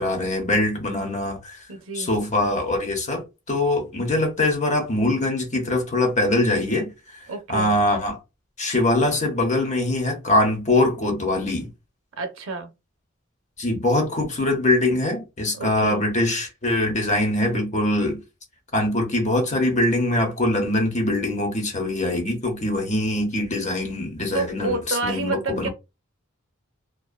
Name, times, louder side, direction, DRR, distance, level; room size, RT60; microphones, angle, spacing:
voice 1, 0.0-1.6 1.9-7.2 7.5-8.2 8.6-11.7 13.6-18.2 18.7-25.7, left 1 dB, 35° left, 0.7 m, -23 dB
voice 2, 1.7-2.1 7.3-7.7 12.2-12.7 15.5-16.0 24.3-25.7, right 4 dB, 65° right, 0.5 m, -29 dB
2.4 x 2.3 x 2.2 m
head